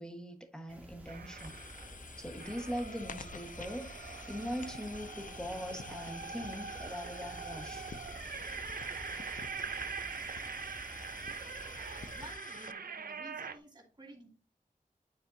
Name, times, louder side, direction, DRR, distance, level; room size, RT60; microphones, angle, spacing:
voice 1, 0.0-1.5 2.2-8.0, equal, 5° left, 1.3 m, -41 dB
sound 1, 0.7-12.3, equal, 10° right, 1.9 m, -51 dB
sound 2, 1.1-2.0 2.4-13.6, right 6 dB, 85° right, 0.5 m, -43 dB
sound 3, 1.4-12.7, left 5 dB, 60° left, 0.4 m, -49 dB
voice 2, 12.0-14.3, right 1 dB, 30° right, 2.0 m, -52 dB
9.8 x 4.4 x 2.6 m
wide cardioid pair, 65°, 15 cm